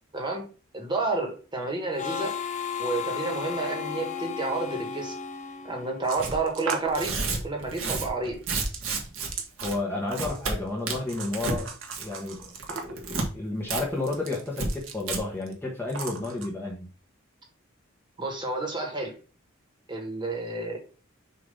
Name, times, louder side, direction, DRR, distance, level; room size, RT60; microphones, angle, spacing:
voice 1, 0.1-0.4 0.7-2.3 2.8-5.1 5.6-7.1 7.4-8.4 18.2-19.1 19.9-20.9, right 3 dB, 20° right, 1 dB, 1.5 m, -30 dB
Harmonica, 2.0-6.4, left 7 dB, 35° left, 0.6 m, -34 dB
sound 1, 6.0-7.1 8.5-9.5 10.1-10.7 11.1-13.1 14.0-15.1 15.4-15.5 15.9-16.5, right 4 dB, 70° right, 1.1 m, -38 dB
Tearing, 6.2-6.4 6.9-9.3 9.6-9.8 10.1-10.5 10.9-11.6 11.9-12.3 12.6-13.3 13.7-13.8 14.1-14.2 14.6-14.7 15.0-15.2, right 4 dB, 85° right, 1.6 m, -30 dB
voice 2, 9.6-16.9, left 2 dB, 10° left, -2 dB, 1.2 m, -32 dB
6.7 x 2.9 x 5.4 m, 0.37 s
head